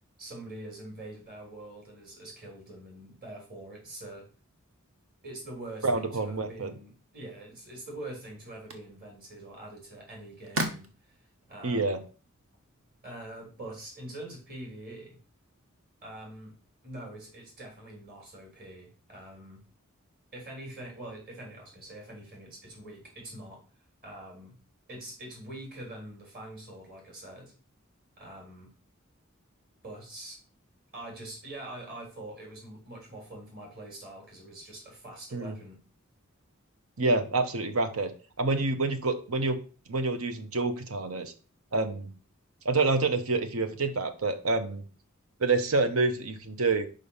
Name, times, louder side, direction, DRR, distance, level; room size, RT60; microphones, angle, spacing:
voice 1, 0.2-4.3 5.2-10.9 11.5-12.0 13.0-15.2 16.0-16.5 16.8-19.6 20.3-23.6 24.0-24.6 24.9-27.5 28.2-28.7 29.8-30.4 30.9-35.8, right 1 dB, 45° right, -1 dB, 3.4 m, -44 dB
voice 2, 5.8-6.7 11.6-12.0 35.3-35.5 37.0-38.1 38.4-39.6 39.9-41.3 41.7-42.1 42.6-44.8 45.4-46.9, right 3 dB, 85° right, 9 dB, 1.0 m, -27 dB
sound 1, 7.7-13.9, right 1 dB, 70° right, 1.2 m, -41 dB
5.3 x 5.2 x 5.6 m, 0.37 s
head